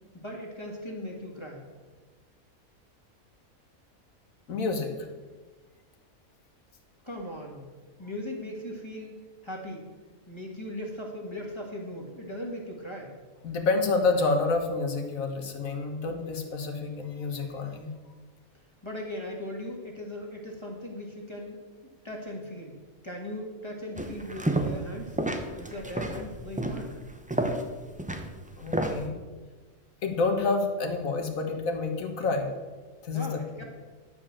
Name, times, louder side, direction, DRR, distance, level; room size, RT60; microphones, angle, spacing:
voice 1, 0.1-1.6 7.0-7.7 8.0-9.2 9.4-9.9 10.3-13.1 18.8-21.6 22.0-22.8 23.0-25.2 25.6-27.0 33.1-33.6, left 1 dB, 20° left, -1 dB, 1.8 m, -38 dB
voice 2, 4.5-5.1 13.4-17.9 28.6-29.1 30.0-32.5 33.0-33.4, left 3 dB, 70° left, 4 dB, 1.7 m, -28 dB
sound 1, 24.0-24.9 25.2-29.1, right 1 dB, 10° right, 0.6 m, -30 dB
11.5 x 5.1 x 7.3 m, 1.3 s
omnidirectional pair, 1.5 m